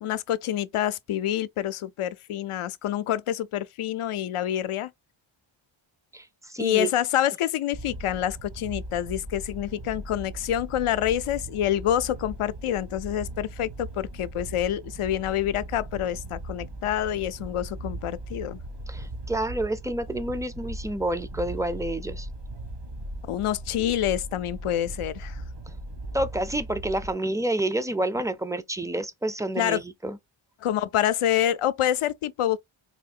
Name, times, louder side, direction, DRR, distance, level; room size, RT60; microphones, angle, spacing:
voice 1, 0.0-4.9 6.6-18.6 23.2-25.4 29.6-29.8 30.6-32.6, left 11 dB, 90° left, 0.5 m, -27 dB
voice 2, 6.1-6.9 18.9-22.3 26.1-30.2, right 1 dB, 5° right, 0.4 m, -29 dB
sound 1, 7.7-27.1, right 1 dB, 60° right, 1.4 m, -38 dB
4.4 x 2.7 x 2.4 m
wide cardioid pair, 110°, 49 cm